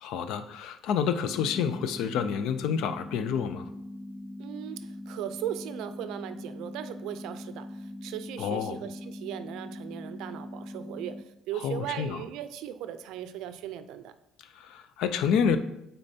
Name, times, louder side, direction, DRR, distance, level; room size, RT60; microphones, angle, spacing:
voice 1, 0.0-3.7 8.4-8.8 11.6-12.2 14.5-15.6, left 7 dB, 70° left, 10 dB, 0.5 m, -28 dB
sound 1, 1.2-11.2, left 1 dB, 10° left, 0.3 m, -41 dB
voice 2, 4.4-14.1, right 11 dB, 75° right, 10 dB, 0.4 m, -38 dB
8.6 x 4.1 x 2.8 m, 0.85 s
cardioid pair, 150°, 0 cm